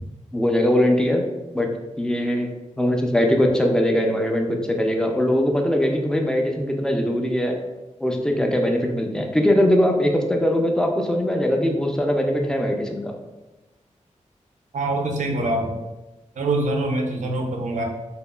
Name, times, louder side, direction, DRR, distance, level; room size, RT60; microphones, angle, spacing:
voice 1, 0.3-1.3 1.5-1.7 2.0-2.5 2.8-7.6 8.0-13.1, equal, 5° left, 2 dB, 0.4 m, -21 dB
voice 2, 14.7-15.8 16.4-17.8, right 2 dB, 70° right, 2 dB, 0.4 m, -24 dB
2.8 x 2.3 x 2.2 m, 1.1 s
wide cardioid pair, 75°, 13 cm